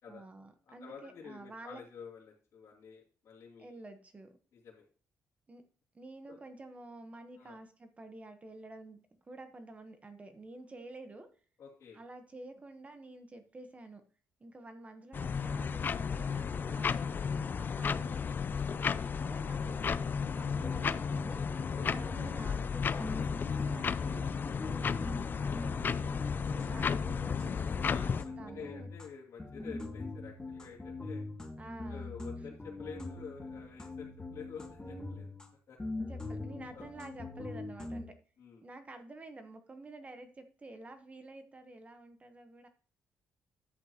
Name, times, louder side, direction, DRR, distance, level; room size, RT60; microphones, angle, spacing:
voice 1, 0.1-1.8 3.6-4.4 5.5-5.6 5.9-11.3 11.9-14.0 14.4-16.9 17.5-21.4 21.9-24.3 24.6-26.0 26.6-28.9 31.6-32.2 36.1-38.1 38.6-42.7, right 2 dB, 25° right, 8 dB, 1.1 m, -50 dB
voice 2, 0.7-3.8 4.5-4.8 6.3-6.4 7.4-7.6 11.6-12.0 16.7-16.9 21.7-22.1 27.8-31.2 31.9-35.3 35.7-35.8 36.7-36.9 38.4-38.6, left 6 dB, 60° left, -6 dB, 2.7 m, -49 dB
sound 1, 15.1-28.2, left 6 dB, 35° left, 0.4 m, -33 dB
sound 2, 20.3-22.7 23.0-29.1 29.4-35.5 35.8-38.0, left 2 dB, 15° left, 1.5 m, -43 dB
10.5 x 8.1 x 2.9 m, 0.42 s
cardioid pair, 125°, 6 cm